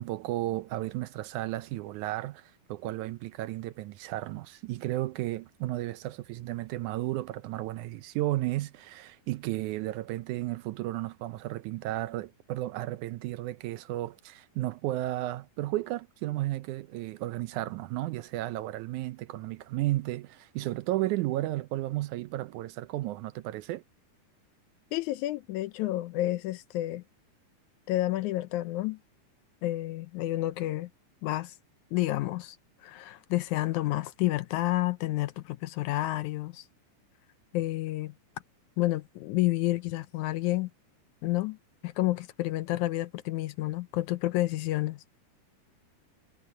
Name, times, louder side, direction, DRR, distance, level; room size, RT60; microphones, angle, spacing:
voice 1, 0.0-23.8, right 16 dB, 80° right, 1.9 m, -33 dB
voice 2, 24.9-27.0 27.9-29.0 29.6-30.9 31.2-31.6 31.9-32.6 32.8-36.7 37.5-38.1 38.8-40.7 41.2-41.6 41.8-45.0, left 17 dB, 75° left, 1.9 m, -30 dB
omnidirectional pair, 3.7 m